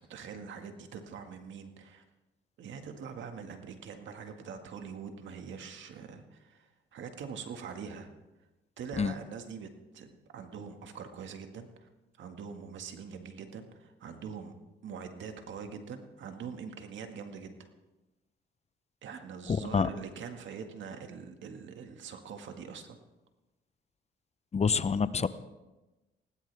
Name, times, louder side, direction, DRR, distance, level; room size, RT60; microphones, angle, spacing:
voice 1, 0.1-2.0 2.6-8.1 8.8-9.7 9.9-11.9 12.2-14.5 14.8-17.7 19.0-23.0, right 6 dB, 70° right, 5 dB, 1.9 m, -43 dB
voice 2, 19.5-19.9 24.5-25.3, left 5 dB, 35° left, 14 dB, 0.7 m, -27 dB
20.0 x 18.0 x 3.5 m, 1.1 s
cardioid pair, 90°, 20 cm